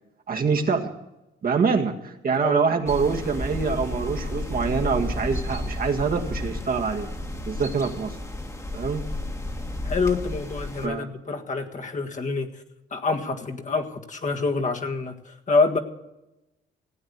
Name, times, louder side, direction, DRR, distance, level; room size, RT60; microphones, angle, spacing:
voice 1, 0.3-0.9 1.4-7.1 7.5-8.1 8.7-9.0 10.8-11.1, right 5 dB, 50° right, 3 dB, 1.8 m, -25 dB
voice 2, 2.3-2.6 9.8-12.5 12.9-15.8, left 4 dB, 40° left, 4 dB, 1.7 m, -26 dB
sound 1, 2.9-10.9, left 2 dB, 15° left, 1.6 m, -32 dB
16.5 x 8.9 x 8.2 m, 0.96 s
cardioid pair, 90°, 20 cm